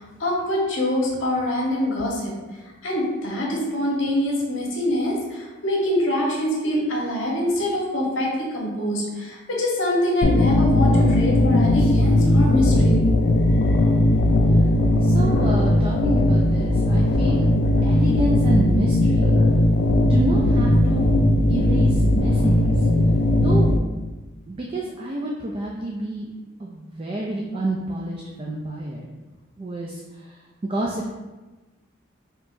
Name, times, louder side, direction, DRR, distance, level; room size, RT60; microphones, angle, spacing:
voice 1, 0.0-2.3 2.8-13.1, left 1 dB, 75° left, -3 dB, 1.1 m, -24 dB
sound 1, 10.2-23.8, left 1 dB, 60° left, 0.4 m, -18 dB
voice 2, 15.0-17.5 17.8-19.4 20.1-21.1 21.5-22.7 23.4-23.7 24.5-26.3 26.6-29.1 29.6-30.4 30.6-31.1, right 1 dB, 30° right, -2 dB, 0.3 m, -28 dB
5.3 x 2.9 x 2.6 m, 1.2 s
head